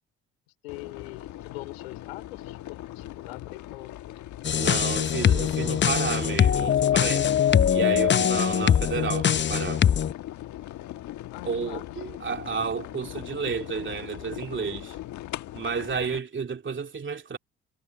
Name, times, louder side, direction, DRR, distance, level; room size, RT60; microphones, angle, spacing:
voice 1, 0.6-3.9 11.3-12.0, left 20 dB, 90° left, 4.6 m, -42 dB
sound 1, 0.7-16.2, left 14 dB, 65° left, 1.5 m, -40 dB
sound 2, 4.4-10.1, left 9 dB, 35° left, 0.7 m, -22 dB
voice 2, 4.5-7.4 7.7-9.8 11.5-15.0 15.5-17.4, right 5 dB, 40° right, 2.8 m, -31 dB
hypercardioid pair, 55°, 31 cm